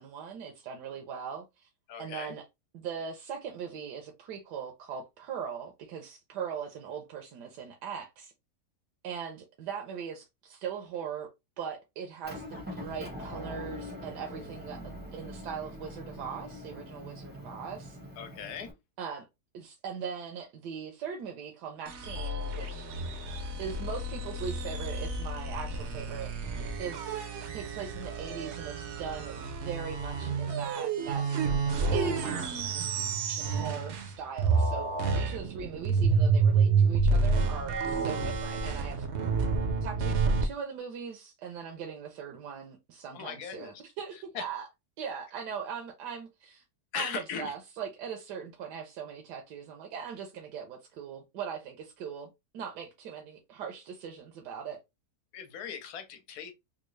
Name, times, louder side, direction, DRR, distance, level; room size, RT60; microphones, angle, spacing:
voice 1, 0.0-1.7 2.0-2.4 2.7-8.3 9.0-11.3 11.6-14.8 15.1-18.0 19.0-19.3 19.5-22.9 23.6-26.5 26.8-27.1 27.5-31.3 31.9-32.6 33.3-34.9 35.1-39.0 39.8-44.7 45.0-46.6 46.9-54.8, right 7 dB, 80° right, 1.3 m, -40 dB
voice 2, 1.9-2.4 18.2-18.7 43.1-43.7 44.3-44.4 46.9-47.5 55.3-56.5, left 7 dB, 70° left, 1.2 m, -38 dB
Motor vehicle (road) / Engine, 12.2-18.7, left 1 dB, 10° right, 0.4 m, -43 dB
sound 1, 21.9-34.1 34.4-40.4, right 4 dB, 65° right, 0.7 m, -29 dB
3.5 x 2.3 x 3.1 m
omnidirectional pair, 1.8 m